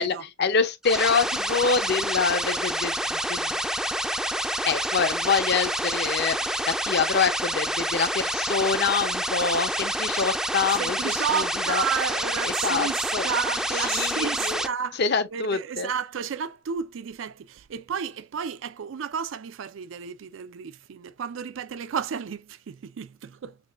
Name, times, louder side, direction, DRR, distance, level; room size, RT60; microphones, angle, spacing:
voice 1, 0.0-3.6 4.6-11.8 12.4-13.3 13.7-14.6 15.0-15.9, left 5 dB, 60° left, 0.6 m, -26 dB
sound 1, 0.8-14.7, right 1 dB, 5° right, 0.3 m, -28 dB
voice 2, 10.8-15.0 15.3-23.6, right 7 dB, 90° right, 0.4 m, -32 dB
6.1 x 2.2 x 2.4 m
head